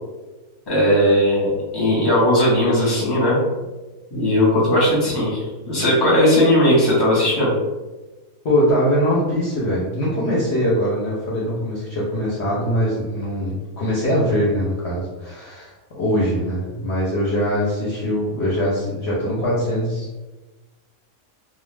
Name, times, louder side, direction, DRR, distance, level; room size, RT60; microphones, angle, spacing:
voice 1, 0.7-3.4 4.1-7.5, left 1 dB, 20° left, -6 dB, 0.8 m, -17 dB
voice 2, 8.4-20.1, equal, 60° left, -6 dB, 0.8 m, -22 dB
2.4 x 2.2 x 3.2 m, 1.2 s
omnidirectional pair, 1.5 m